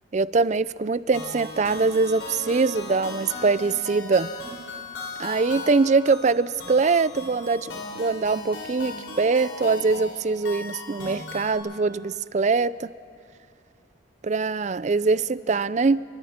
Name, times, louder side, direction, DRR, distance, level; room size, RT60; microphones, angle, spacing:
voice 1, 0.1-4.3 5.2-12.9 14.3-16.0, right 4 dB, 40° right, 17 dB, 0.4 m, -23 dB
sound 1, 1.1-11.6, left 3 dB, 85° left, 4.7 m, -37 dB
29.5 x 23.5 x 4.4 m, 2.4 s
head